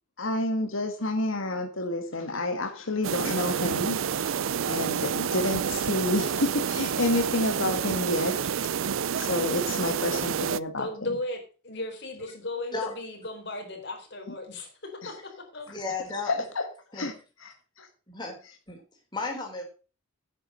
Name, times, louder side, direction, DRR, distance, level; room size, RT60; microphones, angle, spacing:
voice 1, 0.2-8.7 9.2-11.2 12.4-12.7 14.3-14.4 15.0-15.2 16.2-16.6 16.9-17.1 17.4-17.9 18.4-18.6, left 2 dB, 85° left, 5 dB, 1.7 m, -30 dB
sound 1, 3.0-10.6, right 7 dB, 85° right, 0.5 m, -29 dB
voice 2, 10.8-15.2 15.5-15.6, left 2 dB, 55° left, 3 dB, 4.1 m, -36 dB
voice 3, 15.7-16.4 16.9-17.1 18.1-18.4 18.7-18.8 19.1-19.6, left 3 dB, 20° left, 0 dB, 4.2 m, -33 dB
9.9 x 8.6 x 6.3 m, 0.36 s
head